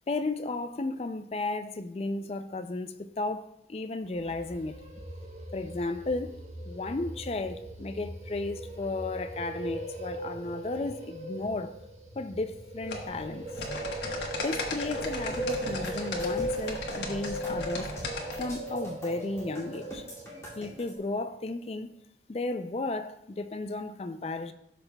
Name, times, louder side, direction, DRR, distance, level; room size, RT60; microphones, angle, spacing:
voice 1, 0.1-4.9 5.5-11.7 12.2-13.5 14.4-17.9 18.4-20.0 20.6-21.9 22.3-24.5, left 2 dB, 35° left, 0.4 m, -34 dB
sound 1, 4.1-21.1, right 1 dB, 40° right, 1.4 m, -39 dB
sound 2, 12.9-18.5, left 2 dB, 75° left, 1.3 m, -36 dB
sound 3, 15.3-20.9, equal, 15° left, 2.3 m, -44 dB
13.0 x 5.8 x 2.3 m
head